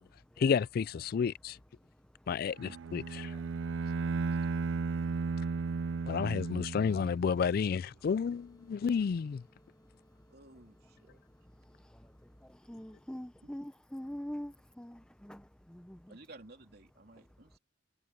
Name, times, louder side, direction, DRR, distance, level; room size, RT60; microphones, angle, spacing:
voice 1, 0.4-1.6 2.3-3.3 6.1-9.4, left 6 dB, 50° left, 0.3 m, -31 dB
Bowed string instrument, 2.6-7.4, right 4 dB, 80° right, 0.4 m, -35 dB
sound 1, 8.1-13.1, equal, 20° left, 3.8 m, -67 dB
voice 2, 10.3-11.2 13.4-13.6 16.1-17.6, right 2 dB, 55° right, 3.0 m, -55 dB
voice 3, 12.7-15.4 15.7-16.1, equal, 5° left, 0.7 m, -43 dB
head